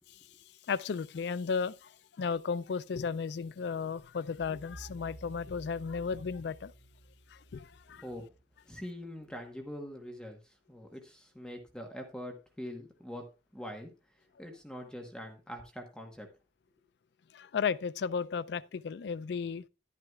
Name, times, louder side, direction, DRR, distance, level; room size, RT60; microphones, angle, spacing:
voice 1, 0.7-6.7 7.3-8.0 17.3-19.7, left 5 dB, 70° left, 0.4 m, -34 dB
sound 1, 4.3-9.2, right 1 dB, 50° right, 0.7 m, -52 dB
voice 2, 7.9-8.3 8.7-16.3, equal, 5° left, 1.1 m, -44 dB
11.0 x 11.0 x 2.3 m
head